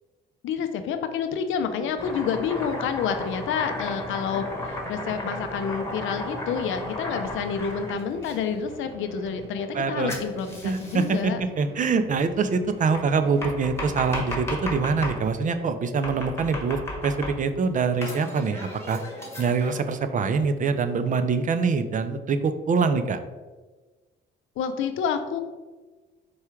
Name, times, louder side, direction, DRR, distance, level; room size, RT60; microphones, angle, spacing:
voice 1, 0.4-11.4 24.6-25.4, left 7 dB, 80° left, 8 dB, 0.5 m, -29 dB
sound 1, 1.5-15.7, right 2 dB, 90° right, 0.8 m, -45 dB
Domestic sounds home sounds, 2.0-8.4 10.1-11.2 12.9-15.2 16.0-17.6 18.0-19.8, left 1 dB, 15° left, 1.2 m, -35 dB
voice 2, 9.7-10.1 10.6-19.0 19.4-23.2, right 5 dB, 40° right, 9 dB, 0.4 m, -24 dB
4.7 x 2.3 x 4.4 m, 1.3 s
cardioid pair, 90°, 20 cm